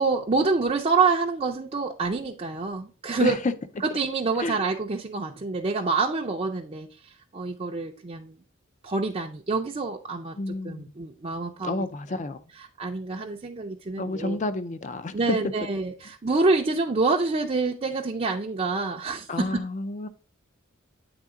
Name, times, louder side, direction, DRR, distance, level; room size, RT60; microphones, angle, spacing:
voice 1, 0.0-3.4 3.8-8.4 8.8-12.2 12.5-14.4 15.1-19.7, right 4 dB, 30° right, 0.5 m, -27 dB
voice 2, 10.4-10.8 11.6-12.4 14.0-15.4 19.3-20.1, left 3 dB, 35° left, 0.5 m, -30 dB
8.8 x 3.6 x 3.6 m
head